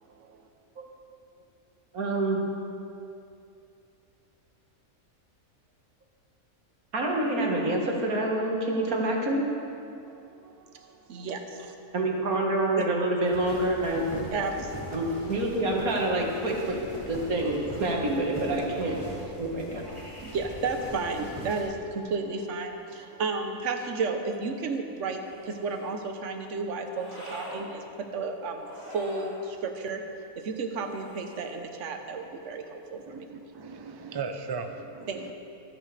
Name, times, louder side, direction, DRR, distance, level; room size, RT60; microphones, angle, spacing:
voice 1, 0.1-0.4 10.1-11.7 12.7-12.9 14.2-14.9 19.9-30.0 30.4-33.2 35.1-35.3, right 4 dB, 60° right, 5 dB, 1.3 m, -33 dB
voice 2, 1.9-2.4 6.9-9.4 11.9-14.3 14.9-16.8 17.1-19.0 19.4-19.9, right 1 dB, 85° right, -1 dB, 2.1 m, -27 dB
sound 1, 13.2-21.7, equal, 20° left, 2.6 m, -42 dB
sound 2, 25.2-26.0 26.9-27.7 28.5-29.4 30.8-31.6, left 1 dB, 70° left, 3.8 m, -44 dB
voice 3, 33.1-35.3, right 5 dB, 35° right, 6 dB, 0.3 m, -37 dB
25.5 x 8.7 x 3.4 m, 2.6 s
omnidirectional pair, 1.5 m